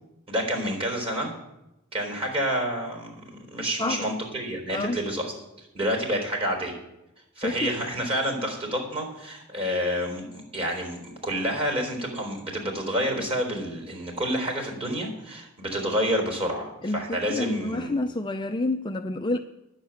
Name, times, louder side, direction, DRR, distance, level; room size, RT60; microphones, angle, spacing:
voice 1, 0.3-1.3 1.9-6.7 7.4-18.0, equal, 25° right, 3.9 m, -29 dB
voice 2, 4.7-5.0 7.4-7.7 16.8-19.4, left 2 dB, 20° left, 0.5 m, -28 dB
10.0 x 7.4 x 8.9 m
head